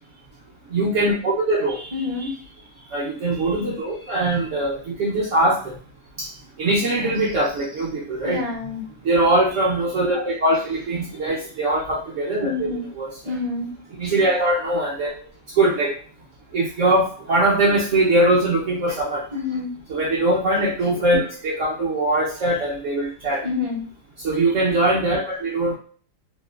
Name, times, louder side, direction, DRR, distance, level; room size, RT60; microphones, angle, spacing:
voice 1, 0.7-2.3 2.9-5.8 6.2-6.3 6.6-8.4 9.0-13.1 13.9-15.1 15.6-15.9 16.5-19.2 19.9-23.4 24.2-25.7, right 1 dB, 65° right, -5 dB, 0.8 m, -21 dB
voice 2, 1.9-2.3 8.2-8.8 12.4-12.9 13.2-13.7 14.0-14.1 19.3-19.7 23.4-23.8, left 4 dB, 35° right, -4 dB, 0.5 m, -27 dB
2.9 x 2.3 x 2.2 m, 0.43 s
omnidirectional pair, 1.8 m